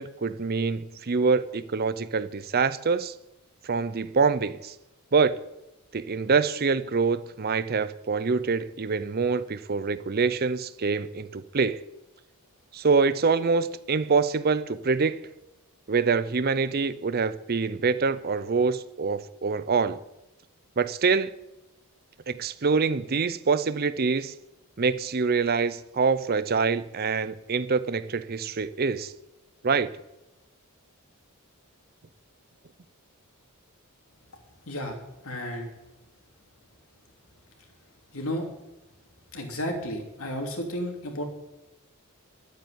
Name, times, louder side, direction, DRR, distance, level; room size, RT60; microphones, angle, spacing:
voice 1, 0.0-3.1 3.6-4.7 5.1-5.4 5.9-11.8 12.7-15.2 15.9-20.0 20.8-21.3 22.3-24.3 24.8-29.1 29.6-29.9, right 4 dB, 45° right, 0.6 m, -25 dB
voice 2, 34.7-35.0 35.2-35.7 38.1-38.5 39.3-41.2, equal, 65° left, 3.3 m, -32 dB
12.0 x 9.1 x 9.6 m
head